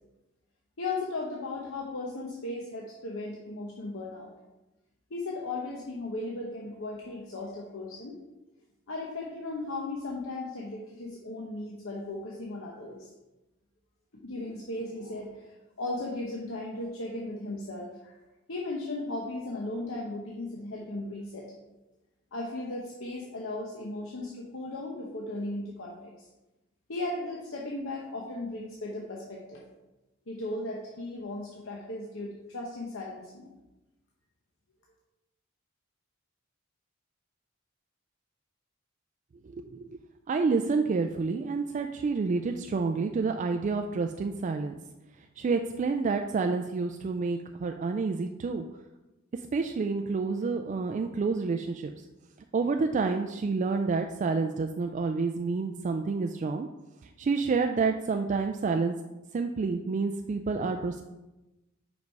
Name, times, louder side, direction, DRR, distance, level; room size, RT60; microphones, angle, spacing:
voice 1, 0.8-4.3 5.1-8.2 8.9-13.1 14.2-18.1 18.5-21.5 22.3-26.1 26.9-29.6 30.3-33.5, left 2 dB, 70° left, -2 dB, 0.9 m, -36 dB
voice 2, 39.5-39.9 40.3-44.8 45.4-48.7 49.5-51.9 52.5-56.7 57.2-58.9 59.3-61.0, right 4 dB, 35° right, 5 dB, 0.3 m, -29 dB
5.3 x 5.1 x 4.7 m, 1.0 s
head